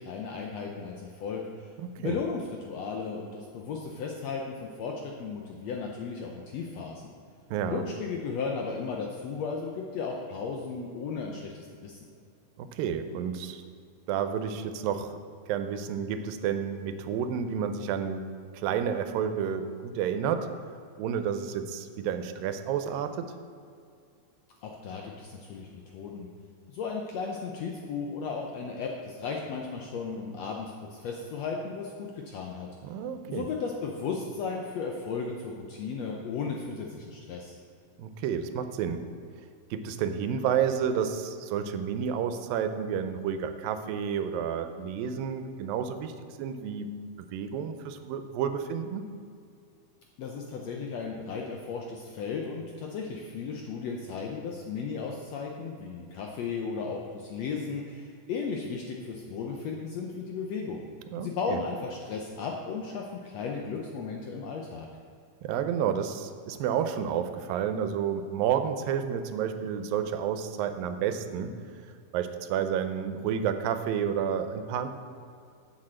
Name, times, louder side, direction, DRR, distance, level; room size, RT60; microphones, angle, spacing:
voice 1, 0.0-1.7 2.0-7.1 7.6-12.0 24.6-26.3 26.7-32.7 33.3-37.6 50.2-60.9 61.2-64.9, left 5 dB, 80° left, 1 dB, 1.5 m, -35 dB
voice 2, 1.8-2.2 7.5-7.8 12.6-13.6 14.1-15.2 15.5-18.2 18.5-20.5 21.0-23.3 32.8-33.5 38.0-39.1 39.7-46.1 46.4-46.9 47.2-49.1 61.1-61.6 65.4-71.5 72.1-74.9, right 8 dB, 90° right, 9 dB, 2.4 m, -30 dB
7.6 x 6.5 x 7.6 m, 2.3 s
omnidirectional pair, 3.9 m